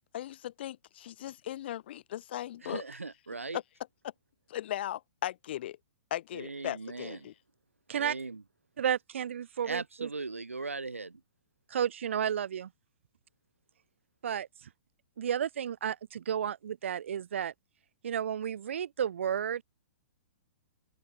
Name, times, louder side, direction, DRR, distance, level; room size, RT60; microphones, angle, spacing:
voice 1, 0.1-2.8 3.5-3.6 4.5-5.8 6.1-7.3, left 13 dB, 55° left, 0.3 m, -37 dB
voice 2, 2.6-3.6 6.3-7.3 7.9-8.4 9.6-11.2, right 3 dB, 90° right, 1.2 m, -39 dB
voice 3, 8.8-10.1 11.7-12.7 14.2-14.5 15.2-17.5 18.0-19.6, right 9 dB, 65° right, 0.5 m, -32 dB
open air
figure-of-eight pair, 115°, 7 cm